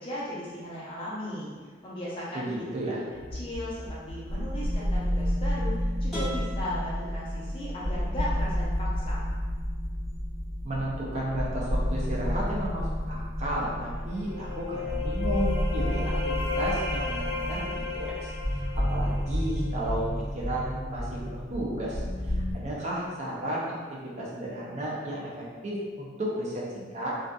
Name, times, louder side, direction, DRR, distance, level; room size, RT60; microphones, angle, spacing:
voice 1, 0.0-1.5 1.8-2.6 3.3-9.2, left 1 dB, 30° left, -7 dB, 0.6 m, -37 dB
voice 2, 2.3-3.0 10.6-22.0 22.3-23.7 24.2-27.1, right 1 dB, 35° right, -5 dB, 0.5 m, -33 dB
sound 1, 3.1-22.5, equal, 80° right, 1.4 m, -31 dB
sound 2, 6.1-8.0, right 1 dB, ahead, 1.1 m, -40 dB
sound 3, 14.1-19.8, left 4 dB, 70° left, 0.4 m, -34 dB
2.6 x 2.3 x 2.2 m, 1.5 s
head